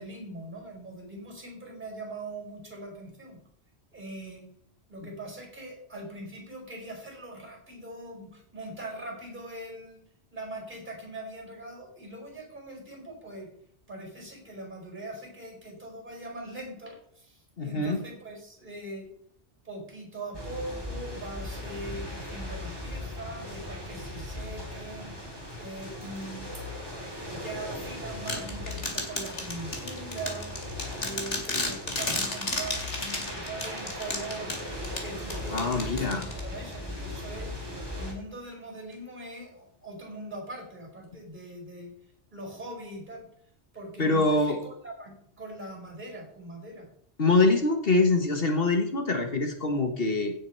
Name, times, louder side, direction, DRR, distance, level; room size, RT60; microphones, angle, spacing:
voice 1, 0.0-3.4 3.9-4.4 4.9-10.0 10.3-13.5 13.9-19.1 19.6-25.1 25.6-26.6 26.9-30.5 30.9-34.5 35.0-37.5 37.9-41.9 42.3-43.3 43.7-46.9, right 2 dB, 40° right, 1 dB, 5.0 m, -41 dB
voice 2, 17.6-18.0 35.5-36.3 44.0-44.6 47.2-50.3, left 3 dB, 55° left, 5 dB, 1.5 m, -24 dB
sound 1, 20.3-38.1, left 1 dB, 20° right, 3.5 m, -38 dB
sound 2, 28.3-36.7, left 2 dB, 75° left, 2.6 m, -33 dB
16.5 x 7.3 x 4.5 m, 0.63 s
omnidirectional pair, 1.2 m